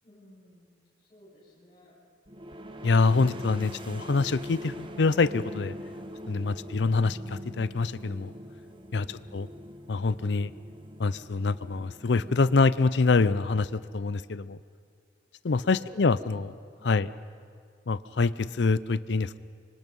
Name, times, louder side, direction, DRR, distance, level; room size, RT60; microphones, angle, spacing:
voice 1, 0.0-0.8 1.1-1.9 6.4-6.8 9.0-9.4 15.7-16.4 16.8-17.1, equal, 30° left, -8 dB, 7.1 m, -54 dB
sound 1, 2.3-13.8, equal, 30° right, 1.1 m, -43 dB
voice 2, 2.8-5.7 6.3-8.3 8.9-9.5 9.9-10.5 11.0-14.6 15.4-16.5 16.8-17.1 17.9-19.4, left 4 dB, 75° left, 17 dB, 0.6 m, -25 dB
25.5 x 25.0 x 5.4 m, 2.1 s
head